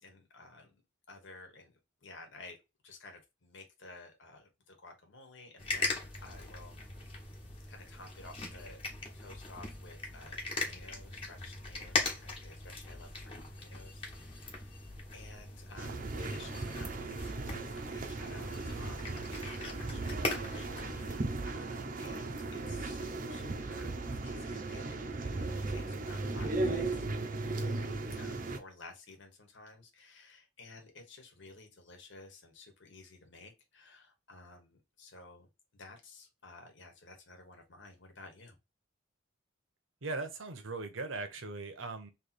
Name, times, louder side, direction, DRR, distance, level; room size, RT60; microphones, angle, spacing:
voice 1, 0.0-0.8 1.1-2.6 2.8-6.8 7.6-14.7 15.1-17.1 17.5-23.9 24.2-27.1 28.2-38.6, left 3 dB, 65° left, 1.3 m, -54 dB
sound 1, 5.6-21.2, left 3 dB, 25° left, 1.2 m, -40 dB
sound 2, 15.8-28.6, right 2 dB, 40° right, 0.6 m, -37 dB
voice 2, 40.0-42.1, right 3 dB, 75° right, 1.0 m, -39 dB
3.3 x 3.0 x 4.2 m
head